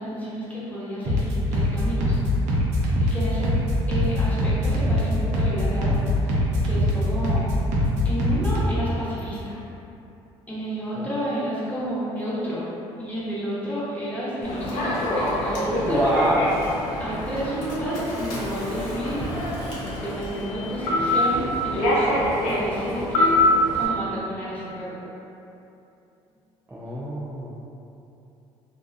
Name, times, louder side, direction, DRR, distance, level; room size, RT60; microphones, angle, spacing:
voice 1, 0.0-2.2 3.0-3.5 3.9-6.0 6.2-7.5 8.0-9.6 10.5-12.6 13.0-16.0 17.0-19.3 19.7-23.3 23.7-25.0, equal, 10° left, -9 dB, 1.0 m, -31 dB
sound 1, 1.0-8.7, left 1 dB, 65° right, 0.6 m, -23 dB
Human voice / Subway metro underground, 14.4-23.9, left 1 dB, 80° left, 0.5 m, -25 dB
voice 2, 15.7-16.5 26.7-27.5, right 1 dB, 10° right, -8 dB, 0.4 m, -26 dB
2.3 x 2.2 x 2.5 m, 2.8 s
hypercardioid pair, 65°, 13 cm